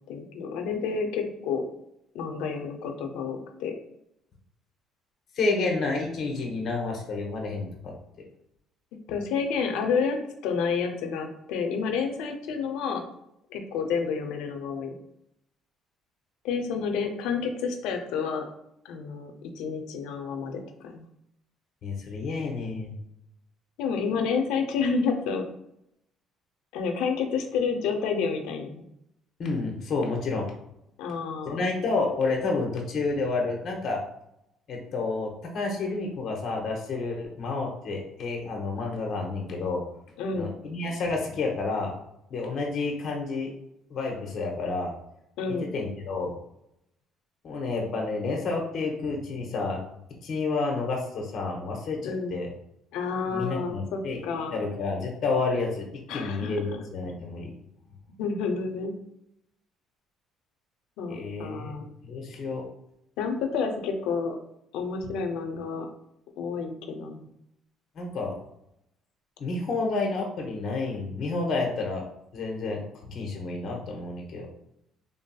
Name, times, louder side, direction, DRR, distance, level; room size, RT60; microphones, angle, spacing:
voice 1, 0.1-1.6 2.1-3.7 9.1-10.2 10.4-13.1 13.5-15.0 16.4-18.4 18.8-21.0 23.8-25.4 26.7-28.8 31.0-31.7 40.2-40.5 45.4-45.7 52.0-52.3 52.9-54.6 56.1-56.5 58.2-58.9 61.0-61.9 63.2-64.4 64.7-65.9 66.4-67.3, left 5 dB, 85° left, 5 dB, 0.5 m, -29 dB
voice 2, 5.3-7.9 8.2-8.3 21.8-22.9 29.4-30.5 31.4-34.0 34.7-39.8 40.3-42.0 42.3-43.5 43.9-44.9 45.7-46.3 47.4-49.8 50.2-52.5 53.3-54.2 54.5-57.5 61.1-61.7 62.0-62.6 68.0-68.4 69.4-72.0 72.3-74.5, left 3 dB, 50° left, 1 dB, 0.7 m, -30 dB
3.5 x 2.6 x 2.2 m, 0.78 s
cardioid pair, 105°, 0 cm